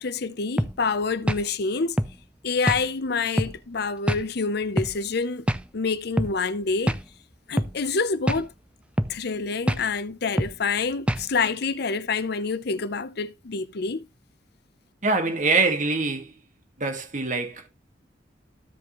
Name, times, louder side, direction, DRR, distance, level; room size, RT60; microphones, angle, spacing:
voice 1, 0.0-2.0 2.4-5.5 5.7-7.0 7.5-8.5 9.1-14.1, left 4 dB, 60° left, 0.7 m, -27 dB
sound 1, 0.6-0.8 1.3-1.5 2.0-2.2 2.7-2.8 3.4-3.6 4.1-4.2 4.8-5.0 5.5-5.7 6.2-6.3 6.9-7.0 7.6-7.7 8.3-8.5 9.0-9.2 9.7-9.8 10.4-10.6 11.1-11.3, equal, 5° right, 0.5 m, -24 dB
voice 2, 15.0-16.3 16.8-17.7, right 3 dB, 45° right, 1.9 m, -24 dB
15.0 x 5.2 x 3.1 m
head